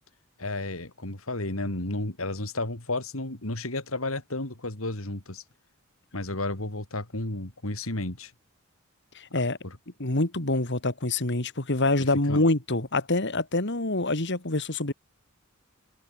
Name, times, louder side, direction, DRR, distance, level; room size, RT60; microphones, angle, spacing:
voice 1, 0.4-5.4 6.1-8.3 9.6-9.8 12.0-12.4, left 2 dB, 75° left, 3.6 m, -32 dB
voice 2, 9.1-9.6 10.0-14.9, left 2 dB, 55° left, 2.8 m, -26 dB
head